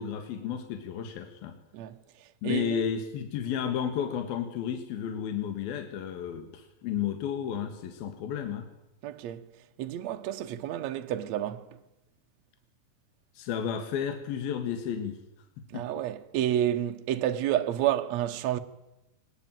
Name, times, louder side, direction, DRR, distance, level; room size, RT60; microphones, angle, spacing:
voice 1, 0.0-1.6 2.4-8.7 13.3-15.2 15.7-15.9, left 8 dB, 75° left, 3.3 m, -32 dB
voice 2, 2.4-2.9 9.0-9.5 9.8-11.7 15.7-18.6, right 12 dB, 70° right, 1.8 m, -30 dB
20.0 x 20.0 x 9.0 m
omnidirectional pair, 4.4 m